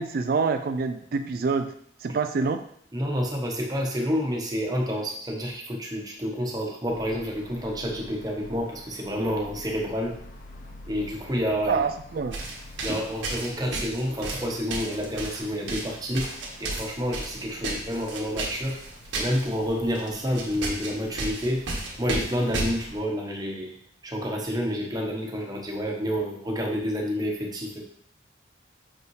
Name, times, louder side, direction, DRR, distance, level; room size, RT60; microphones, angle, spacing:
voice 1, 0.0-1.7 2.0-2.6 11.7-12.3, right 4 dB, 50° right, 8 dB, 0.3 m, -26 dB
voice 2, 2.9-10.2 10.9-11.8 12.8-16.3 16.6-18.8 19.1-21.6 22.0-23.8 24.0-27.8, equal, 20° right, 1 dB, 1.0 m, -29 dB
sound 1, 6.9-23.0, left 1 dB, 45° left, 0.7 m, -47 dB
sound 2, 12.3-19.5 19.9-20.1 20.3-22.8, right 2 dB, 80° right, 1.4 m, -33 dB
6.4 x 5.4 x 3.2 m, 0.66 s
head